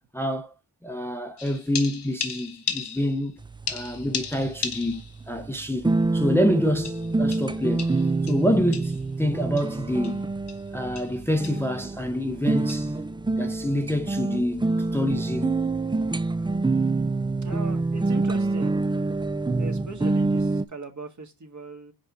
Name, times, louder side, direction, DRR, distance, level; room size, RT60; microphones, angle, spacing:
voice 1, 0.1-0.5 0.8-3.4 3.7-7.9 8.2-10.2 10.7-12.9 13.4-14.6 14.9-15.6, equal, 5° left, 0.8 m, -27 dB
sound 1, 1.4-3.3 3.7-5.2 5.6-5.7 6.8-9.1 9.6-9.7 10.0-10.2 10.5-10.7 11.0-11.2 11.4-11.7 12.7-12.9, left 6 dB, 80° left, 1.5 m, -35 dB
sound 2, 3.4-20.7, right 3 dB, 10° right, 0.4 m, -27 dB
voice 2, 17.4-18.8 19.6-21.9, right 3 dB, 45° right, 1.9 m, -39 dB
5.2 x 4.7 x 5.1 m
cardioid pair, 70°, 40 cm